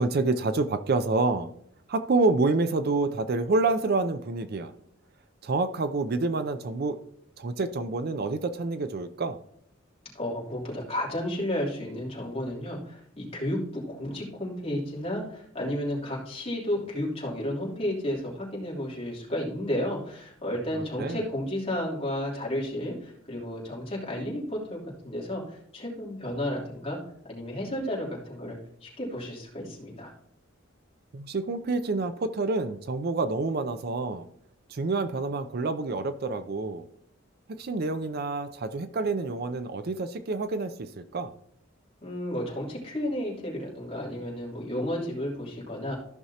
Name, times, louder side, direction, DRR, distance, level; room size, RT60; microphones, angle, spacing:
voice 1, 0.0-1.5 1.9-4.7 5.4-7.0 7.4-9.4 20.7-21.2 31.1-34.3 34.7-36.9 37.6-41.3, right 3 dB, 50° right, 11 dB, 0.5 m, -28 dB
voice 2, 10.1-27.0 27.3-30.1 42.0-46.0, left 1 dB, 30° left, -4 dB, 3.1 m, -32 dB
14.5 x 6.0 x 2.8 m, 0.69 s
head